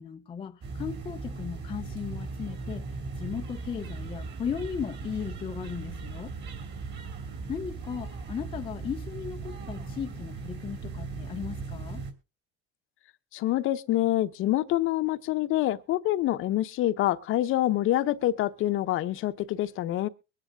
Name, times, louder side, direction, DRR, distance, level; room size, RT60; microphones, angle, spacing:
voice 1, 0.0-2.9 3.2-6.3 7.5-12.0, left 7 dB, 20° left, 0.5 m, -36 dB
sound 1, 0.6-12.1, right 4 dB, 35° right, 2.3 m, -38 dB
voice 2, 13.3-20.1, left 14 dB, 45° left, 0.8 m, -26 dB
22.5 x 10.0 x 2.3 m
cardioid pair, 160°, 30 cm